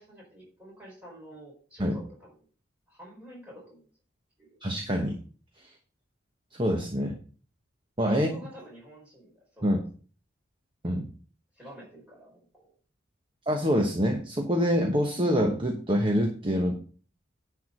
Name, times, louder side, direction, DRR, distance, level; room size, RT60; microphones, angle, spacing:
voice 1, 0.0-2.4 2.9-3.9 4.4-4.6 8.1-9.8 11.6-12.7, right 1 dB, 5° right, -4 dB, 4.6 m, -48 dB
voice 2, 4.6-5.2 6.6-7.2 8.0-8.3 9.6-9.8 10.8-11.1 13.5-16.8, equal, 25° right, 2 dB, 1.1 m, -25 dB
10.0 x 4.6 x 6.6 m, 0.41 s
head